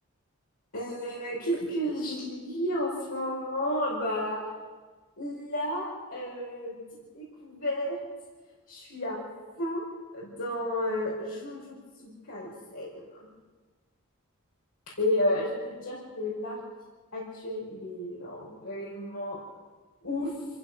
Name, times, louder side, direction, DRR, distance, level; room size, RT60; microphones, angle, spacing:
voice 1, 0.7-4.4 5.2-6.8 7.1-8.0 8.7-9.2 9.6-9.8 10.1-13.1 15.0-16.6 17.1-19.4 20.0-20.3, left 1 dB, 70° left, -6 dB, 5.4 m, -32 dB
27.5 x 15.5 x 6.4 m, 1.4 s
head